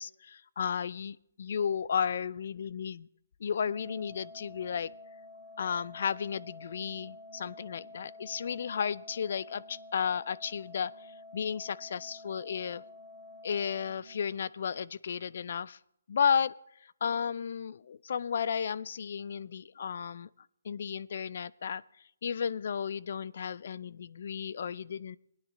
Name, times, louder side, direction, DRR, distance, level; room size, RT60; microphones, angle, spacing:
voice 1, 0.0-3.1 3.4-4.9 5.6-12.8 13.4-15.8 16.1-16.5 16.8-20.3 20.6-21.8 22.2-25.2, left 7 dB, 55° left, 19 dB, 0.4 m, -33 dB
Organ, 3.6-14.6, left 2 dB, 20° right, 2.7 m, -50 dB
19.5 x 9.6 x 3.0 m, 0.76 s
hypercardioid pair, 160°, 0 cm